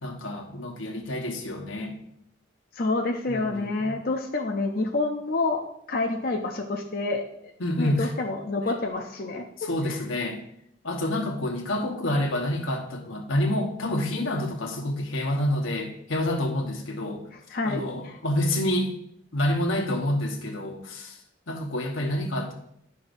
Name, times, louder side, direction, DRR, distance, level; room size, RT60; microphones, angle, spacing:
voice 1, 0.0-1.9 3.3-4.0 7.6-8.1 9.6-10.4 10.8-17.2 17.6-18.9 19.3-21.2 21.5-22.5, left 1 dB, 90° left, 3 dB, 1.2 m, -28 dB
voice 2, 2.7-7.5 7.8-10.0 17.3-18.2, left 3 dB, 50° left, 2 dB, 0.5 m, -28 dB
11.0 x 5.6 x 2.6 m, 0.73 s
head